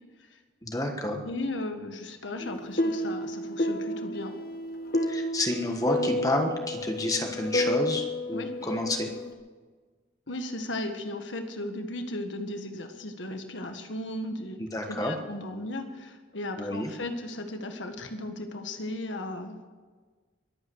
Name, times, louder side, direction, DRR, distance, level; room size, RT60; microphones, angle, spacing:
voice 1, 0.6-1.2 5.1-9.1 14.6-15.2 16.6-16.9, left 1 dB, 20° left, 3 dB, 1.3 m, -30 dB
voice 2, 1.2-4.4 8.3-8.5 10.3-14.6 14.9-19.6, left 1 dB, 85° left, 6 dB, 1.7 m, -36 dB
sound 1, 2.4-9.3, left 1 dB, 55° left, 1.7 m, -31 dB
22.5 x 8.8 x 6.3 m, 1.4 s
head